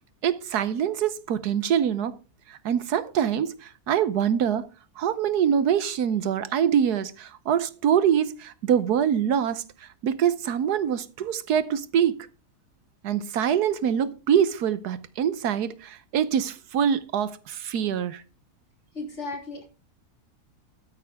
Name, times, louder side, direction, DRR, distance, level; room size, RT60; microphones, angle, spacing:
voice 1, 0.2-2.1 2.5-4.7 5.0-9.6 10.0-12.1 13.0-18.2, right 8 dB, 75° right, 1.4 m, -24 dB
voice 2, 18.9-19.6, left 3 dB, 45° left, 3.0 m, -35 dB
13.0 x 8.8 x 3.5 m
omnidirectional pair, 1.7 m